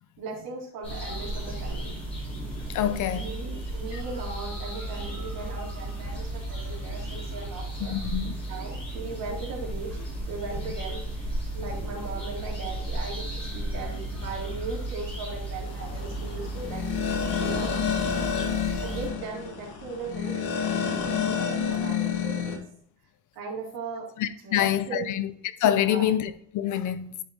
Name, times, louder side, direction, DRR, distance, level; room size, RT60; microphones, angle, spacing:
voice 1, 0.2-1.9 2.8-7.9 8.5-10.0 10.3-11.0 11.5-17.7 18.8-22.5 23.3-24.1 24.4-25.1 25.8-26.1, right 3 dB, 65° right, 3.4 m, -38 dB
sound 1, 0.8-19.1, right 1 dB, 15° left, 3.7 m, -34 dB
voice 2, 2.7-3.3 3.9-4.0 7.9-8.4 24.2-25.3 25.6-27.2, left 11 dB, 50° left, 0.7 m, -26 dB
sound 2, 15.7-22.6, left 7 dB, 90° left, 1.8 m, -29 dB
11.0 x 5.4 x 3.1 m
cardioid pair, 175°, 37 cm